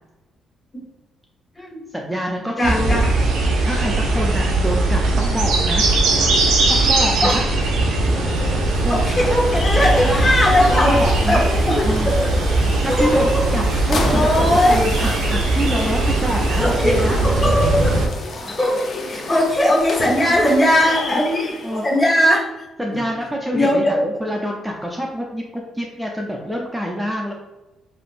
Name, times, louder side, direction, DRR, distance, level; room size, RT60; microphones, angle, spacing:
voice 1, 1.6-3.0 3.6-5.9 6.7-7.4 8.8-9.0 10.0-11.4 11.8-12.1 12.8-13.6 13.9-17.2 20.2-20.4 20.8-21.2 21.6-21.8 22.8-27.3, equal, 5° right, -1 dB, 0.4 m, -26 dB
voice 2, 2.6-3.1 7.2-7.3 8.1-8.6 8.9-12.6 12.9-13.4 13.7-14.8 16.6-18.0 18.5-21.6 21.8-22.4 23.5-24.1, left 1 dB, 35° left, -5 dB, 1.5 m, -19 dB
sound 1, 2.6-18.1, right 2 dB, 85° right, 0.5 m, -19 dB
sound 2, 8.0-22.1, left 2 dB, 55° left, 0.5 m, -31 dB
3.2 x 2.4 x 2.5 m, 1.0 s
cardioid pair, 90°, 0 cm